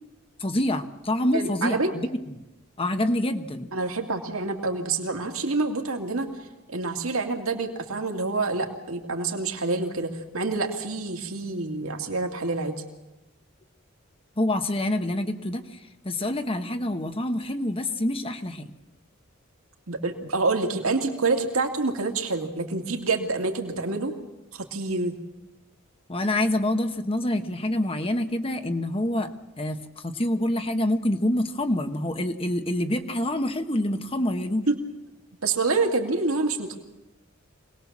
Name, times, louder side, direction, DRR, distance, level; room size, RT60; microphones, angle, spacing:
voice 1, 0.4-2.1 2.8-3.7 14.4-15.6 16.0-18.6 26.1-29.3 29.6-34.7, left 1 dB, 25° left, 7 dB, 1.2 m, -26 dB
voice 2, 1.3-1.9 3.7-6.3 6.7-12.8 19.9-24.1 24.5-25.1 34.7-34.8 35.4-36.8, right 3 dB, 85° right, 3 dB, 2.3 m, -27 dB
25.0 x 19.0 x 7.4 m, 0.99 s
head